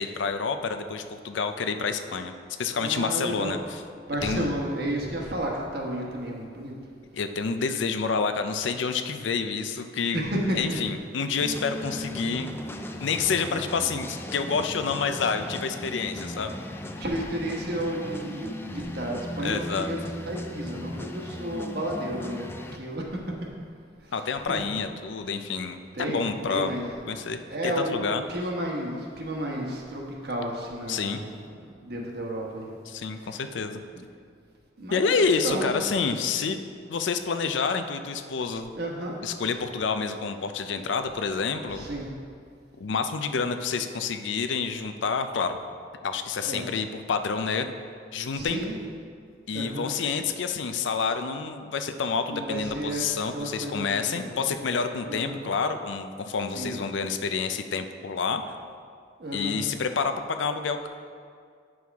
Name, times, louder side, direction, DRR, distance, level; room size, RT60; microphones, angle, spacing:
voice 1, 0.0-2.3 2.6-3.6 4.2-4.5 7.1-10.3 10.6-12.6 13.0-16.5 19.4-19.9 24.1-25.8 26.1-26.7 27.1-28.2 30.9-31.2 32.9-33.8 34.9-36.6 36.9-38.7 39.2-41.9 42.8-45.6 46.0-47.7 48.1-48.6 49.5-58.5 59.3-60.9, left 5 dB, 75° left, 8 dB, 0.5 m, -28 dB
voice 2, 2.7-3.5 4.1-6.7 10.1-10.8 11.8-12.1 16.3-16.5 16.8-23.5 24.0-24.6 25.9-27.0 27.5-32.8 33.1-33.4 34.1-34.2 34.8-35.8 38.7-39.1 41.7-42.1 46.4-46.7 48.3-48.7 49.5-49.9 52.3-53.0 53.3-54.4 55.1-55.4 56.5-56.8 59.2-59.6, right 1 dB, 60° right, -1 dB, 1.3 m, -32 dB
sound 1, 11.4-22.8, left 1 dB, 10° left, 0.4 m, -37 dB
9.2 x 6.3 x 3.5 m, 2.2 s
head